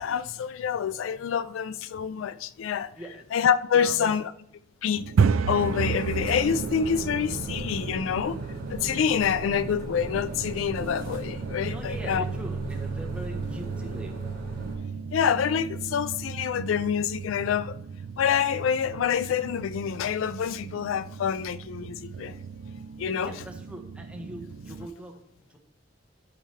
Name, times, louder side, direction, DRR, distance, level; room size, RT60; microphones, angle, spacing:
voice 1, 0.0-2.9 3.3-4.3 4.8-5.1 5.5-8.4 8.7-12.2 15.1-17.8 18.2-22.4 23.0-23.3, left 7 dB, 75° left, 0.3 m, -27 dB
voice 2, 2.9-3.3 3.7-4.1 11.6-14.1 23.2-25.2 25.5-25.6, right 1 dB, 5° right, 1.0 m, -41 dB
sound 1, 5.0-24.9, right 6 dB, 85° right, 0.4 m, -33 dB
sound 2, 5.5-14.8, equal, 45° right, 2.7 m, -39 dB
12.5 x 4.4 x 3.2 m
head